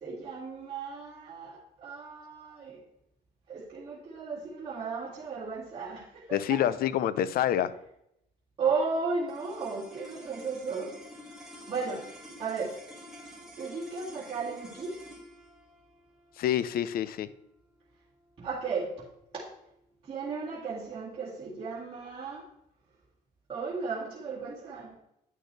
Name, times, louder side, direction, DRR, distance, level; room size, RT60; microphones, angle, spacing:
voice 1, 0.0-2.8 3.5-6.6 8.6-10.9 11.7-12.1 12.4-12.8 13.6-15.0 18.4-19.1 19.3-19.5 20.0-22.5 23.5-24.9, right 4 dB, 30° right, -8 dB, 2.1 m, -35 dB
voice 2, 6.3-7.7 16.4-17.3, left 11 dB, 60° left, 16 dB, 0.6 m, -27 dB
sound 1, 9.3-19.7, equal, ahead, 3.0 m, -50 dB
9.7 x 6.4 x 3.2 m, 0.79 s
cardioid pair, 110°, 17 cm